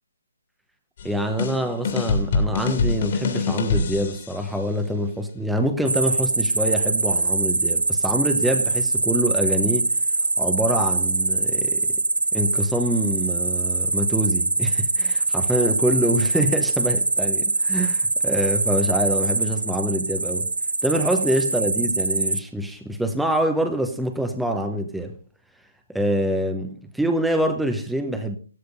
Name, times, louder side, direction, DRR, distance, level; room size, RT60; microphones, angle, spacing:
sound 1, 1.0-4.5, left 3 dB, 40° left, 2.6 m, -24 dB
voice 1, 1.0-9.9 10.4-11.9 12.3-20.5 20.8-25.1 25.9-28.4, right 1 dB, ahead, 1.0 m, -25 dB
sound 2, 5.9-22.4, right 3 dB, 80° right, 0.7 m, -23 dB
15.0 x 13.5 x 2.6 m
figure-of-eight pair, 145°, 0 cm